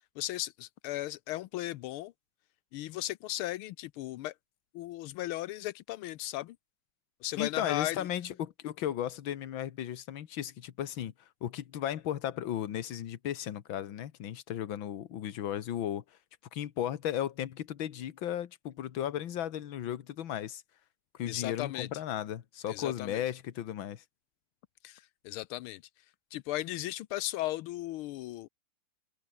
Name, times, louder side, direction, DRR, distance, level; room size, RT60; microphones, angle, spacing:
voice 1, 0.0-2.1 2.7-4.3 4.7-6.6 7.2-8.1 21.3-21.9 22.7-23.2 24.8-25.8 26.3-28.5, left 15 dB, 85° left, 1.5 m, -36 dB
voice 2, 7.4-11.1 11.4-16.0 16.5-20.6 21.2-24.0, left 10 dB, 65° left, 1.9 m, -35 dB
omnidirectional pair, 2.4 m